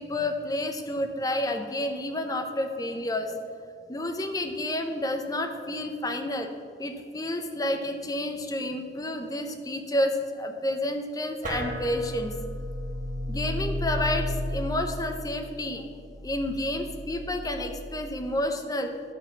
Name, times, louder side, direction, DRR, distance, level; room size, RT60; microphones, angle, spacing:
voice 1, 0.0-3.3 3.9-6.5 6.8-12.3 13.3-15.8 16.2-18.9, left 1 dB, 20° left, 6 dB, 0.7 m, -30 dB
sound 1, 11.4-18.2, left 1 dB, 45° right, 1.3 m, -34 dB
11.0 x 4.1 x 6.8 m, 2.2 s
head